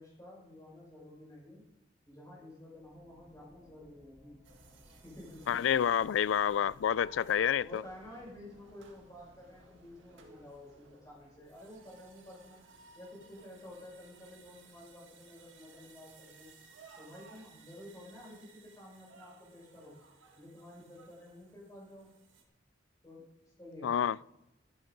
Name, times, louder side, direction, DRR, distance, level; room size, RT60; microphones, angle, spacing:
voice 1, 0.0-1.6 2.0-4.4 5.0-5.6 7.3-12.6 12.9-16.5 17.0-19.9 20.4-22.1 23.0-23.2 23.6-24.0, left 1 dB, 20° left, 5.9 m, -51 dB
sound 1, 2.7-18.1, left 1 dB, 30° right, 3.6 m, -64 dB
sound 2, 4.4-22.4, right 4 dB, 80° right, 1.8 m, -60 dB
voice 2, 5.5-7.8 23.8-24.2, left 8 dB, 80° left, 0.3 m, -28 dB
13.5 x 10.5 x 5.2 m
head